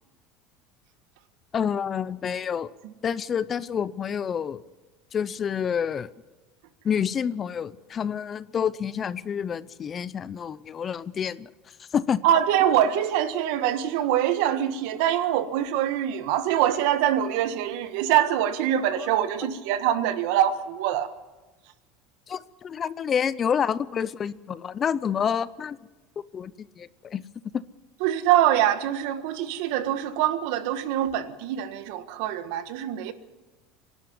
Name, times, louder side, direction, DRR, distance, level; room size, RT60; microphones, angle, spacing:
voice 1, 1.5-2.7 3.0-4.6 5.1-6.1 6.8-12.2 18.9-19.1 22.3-25.8 26.2-27.2 27.5-27.6, left 7 dB, 25° left, 0.6 m, -28 dB
voice 2, 12.2-21.1 28.0-33.1, right 11 dB, 70° right, 1.5 m, -24 dB
25.0 x 11.5 x 9.7 m
supercardioid pair, 145°, 0 cm